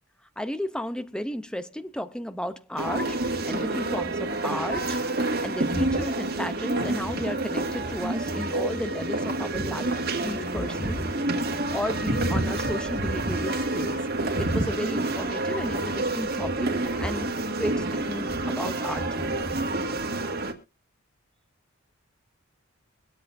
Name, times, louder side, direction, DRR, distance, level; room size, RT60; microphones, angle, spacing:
voice 1, 0.4-5.0 5.4-11.1 11.7-19.4, left 1 dB, 5° left, 0.6 m, -34 dB
sound 1, 2.8-20.5, right 2 dB, 50° right, 1.7 m, -28 dB
23.5 x 8.3 x 2.6 m
head